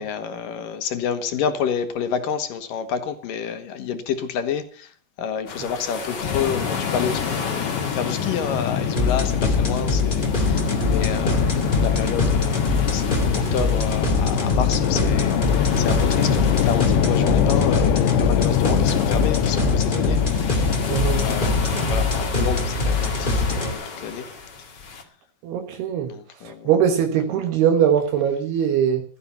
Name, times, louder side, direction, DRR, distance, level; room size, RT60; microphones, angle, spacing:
voice 1, 0.0-4.9 5.2-24.3 26.1-26.7, left 7 dB, 60° left, 3.0 m, -29 dB
sound 1, 5.5-25.0, left 4 dB, 35° left, 1.9 m, -34 dB
sound 2, 6.2-22.1, left 9 dB, 85° left, 3.2 m, -24 dB
sound 3, 9.0-23.7, left 3 dB, 20° left, 1.6 m, -23 dB
voice 2, 20.9-21.2 25.4-26.1 26.4-29.0, right 8 dB, 75° right, 3.3 m, -21 dB
16.5 x 13.5 x 5.8 m
omnidirectional pair, 4.8 m